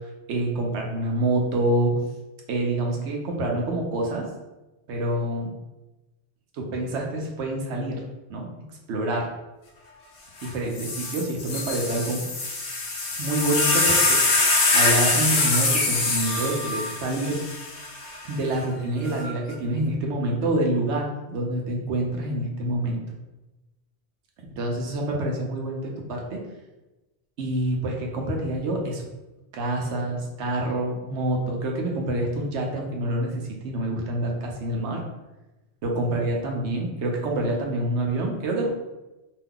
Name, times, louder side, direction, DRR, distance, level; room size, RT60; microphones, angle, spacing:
voice 1, 0.3-1.9 2.5-4.2 4.9-5.5 6.5-8.0 8.3-8.5 8.9-9.3 10.4-12.3 13.2-14.2 14.7-17.4 18.2-23.0 24.5-26.4 27.4-29.1 29.5-35.0 35.8-38.7, right 1 dB, 85° right, 0 dB, 1.0 m, -27 dB
sound 1, 10.4-10.5 10.8-18.2 19.1-19.5, left 3 dB, 65° left, 0.8 m, -24 dB
2.7 x 2.2 x 3.6 m, 1.0 s
omnidirectional pair, 1.1 m